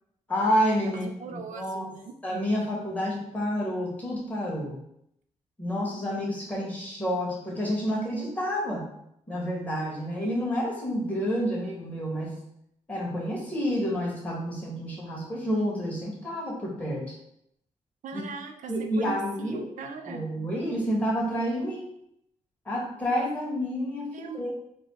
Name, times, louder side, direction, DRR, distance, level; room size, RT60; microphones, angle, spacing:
voice 1, 0.3-1.0 1.3-1.9 2.2-4.8 5.6-8.9 9.3-12.4 12.9-17.1 18.1-18.2 18.7-19.7 20.1-21.9 22.6-24.5, equal, 10° left, -4 dB, 1.7 m, -29 dB
voice 2, 1.2-2.2 18.0-20.3 24.1-24.5, right 4 dB, 85° right, 5 dB, 0.6 m, -40 dB
4.1 x 2.3 x 4.6 m, 0.76 s
cardioid pair, 90°, 13 cm